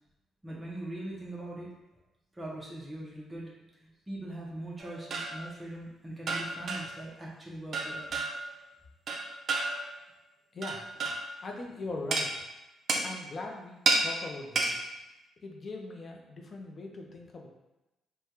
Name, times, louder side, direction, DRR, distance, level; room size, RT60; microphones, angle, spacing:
voice 1, 0.4-1.7 2.3-8.2, right 1 dB, 15° right, -4 dB, 0.7 m, -41 dB
sound 1, 4.8-5.4 6.3-7.0 7.7-8.5 9.1-9.9 10.6-11.3 12.1-12.3 12.9-13.1 13.9-14.1 14.6-14.8, right 3 dB, 50° right, 0.4 m, -30 dB
voice 2, 10.5-11.1 11.4-12.5 13.0-14.9 15.4-17.5, left 2 dB, 40° left, 1 dB, 0.6 m, -41 dB
3.4 x 2.2 x 2.8 m, 0.99 s
cardioid pair, 90°, 0 cm